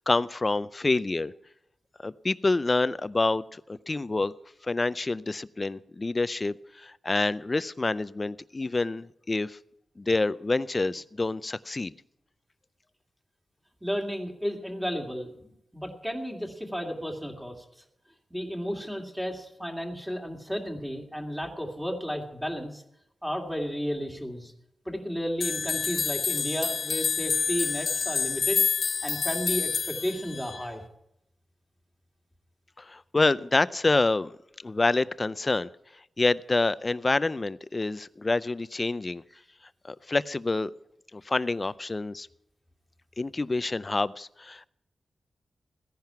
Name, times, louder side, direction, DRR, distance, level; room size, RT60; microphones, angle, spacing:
voice 1, 0.0-1.3 2.0-4.3 4.7-9.6 10.0-11.9 32.8-34.3 34.6-35.7 36.2-39.2 39.8-40.7 41.1-42.3 43.2-44.7, left 3 dB, 30° left, 17 dB, 0.4 m, -27 dB
voice 2, 13.8-17.6 18.3-22.8 23.2-24.5 24.9-28.6 29.0-30.8, equal, 5° right, 1 dB, 2.2 m, -33 dB
sound 1, 25.4-30.6, left 6 dB, 70° left, 1.6 m, -28 dB
15.5 x 10.5 x 5.8 m, 0.80 s
wide cardioid pair, 100°, 0 cm